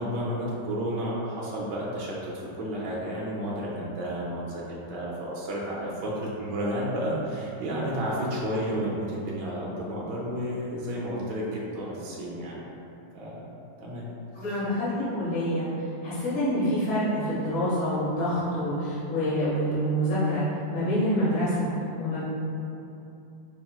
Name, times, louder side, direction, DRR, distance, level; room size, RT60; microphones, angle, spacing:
voice 1, 0.0-12.6 13.1-13.5 13.8-14.1, equal, 70° right, -6 dB, 1.2 m, -31 dB
voice 2, 14.3-20.4 20.7-21.7 22.0-22.2, equal, 45° left, -10 dB, 1.5 m, -27 dB
5.5 x 2.9 x 2.3 m, 2.8 s
omnidirectional pair, 2.1 m